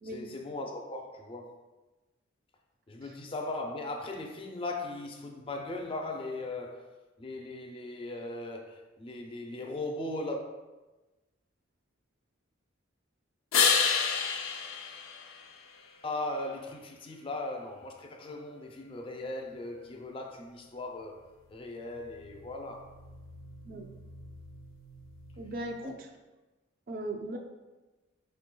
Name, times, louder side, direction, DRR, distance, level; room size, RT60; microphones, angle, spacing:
voice 1, 0.1-1.6 2.9-6.9 7.2-10.4 16.0-21.2 21.5-22.9 25.8-25.9, left 2 dB, 25° left, 2 dB, 0.4 m, -38 dB
sound 1, 13.5-16.1 21.8-25.8, left 6 dB, 85° left, 0.5 m, -32 dB
voice 2, 25.4-26.1 26.9-27.4, right 1 dB, 45° right, 3 dB, 0.4 m, -38 dB
4.5 x 4.5 x 2.2 m, 1.1 s
head